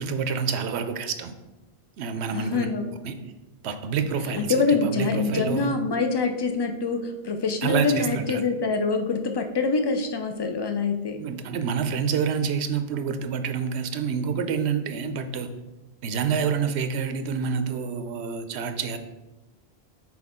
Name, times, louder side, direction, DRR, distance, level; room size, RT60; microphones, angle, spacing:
voice 1, 0.0-1.3 2.0-2.7 3.0-3.1 3.6-5.7 7.6-8.4 11.2-15.5 16.0-19.0, right 6 dB, 90° right, 9 dB, 0.9 m, -27 dB
voice 2, 2.3-2.9 4.2-11.2, left 4 dB, 40° left, 6 dB, 0.3 m, -25 dB
6.1 x 4.6 x 3.6 m, 1.1 s
omnidirectional pair, 1.1 m